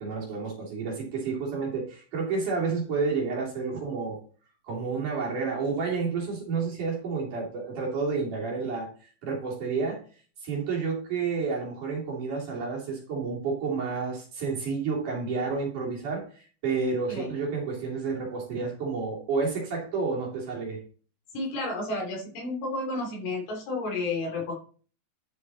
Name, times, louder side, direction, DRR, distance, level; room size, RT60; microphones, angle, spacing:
voice 1, 0.0-4.2 4.6-8.9 9.2-10.0 10.4-20.8, right 4 dB, 50° right, -3 dB, 4.4 m, -30 dB
voice 2, 21.3-24.5, left 2 dB, 65° left, 0 dB, 5.4 m, -31 dB
11.5 x 6.4 x 4.2 m, 0.40 s
omnidirectional pair, 4.8 m